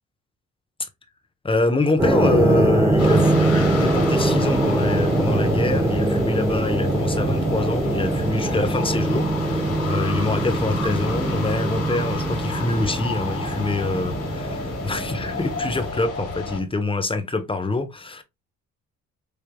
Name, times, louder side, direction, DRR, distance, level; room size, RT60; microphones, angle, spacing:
voice 1, 1.4-18.2, left 2 dB, 15° left, 0.9 m, -25 dB
sound 1, 2.0-15.9, right 2 dB, 10° right, 0.8 m, -23 dB
sound 2, 3.0-16.6, left 3 dB, 55° left, 1.8 m, -32 dB
4.5 x 3.3 x 2.2 m
cardioid pair, 90°, 30 cm